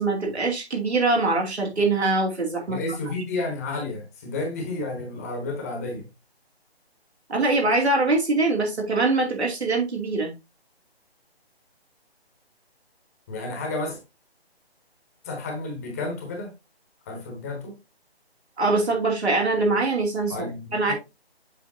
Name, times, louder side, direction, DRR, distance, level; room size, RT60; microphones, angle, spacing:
voice 1, 0.0-2.8 7.3-10.3 18.6-20.3 20.7-20.9, right 3 dB, 80° right, 2.6 m, -23 dB
voice 2, 2.7-6.0 13.3-14.0 15.2-16.5 17.1-17.7 20.3-20.9, left 2 dB, 15° left, 1.1 m, -31 dB
7.5 x 5.0 x 2.7 m
figure-of-eight pair, 160°, 32 cm